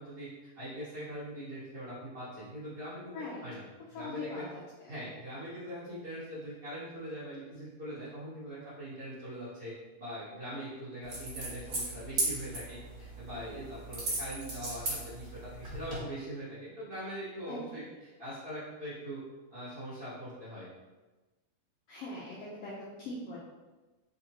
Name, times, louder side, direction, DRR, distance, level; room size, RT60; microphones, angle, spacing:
voice 1, 0.0-3.6 3.9-4.5 4.9-9.7 10.0-19.2 19.5-20.7, equal, 90° right, -11 dB, 0.7 m, -42 dB
voice 2, 3.9-4.6 4.9-5.0 17.5-17.6 21.9-23.4, left 2 dB, 85° left, -6 dB, 1.3 m, -41 dB
sound 1, 11.0-16.0, right 2 dB, 50° right, 1.3 m, -37 dB
4.2 x 3.9 x 2.9 m, 1.2 s
omnidirectional pair, 3.7 m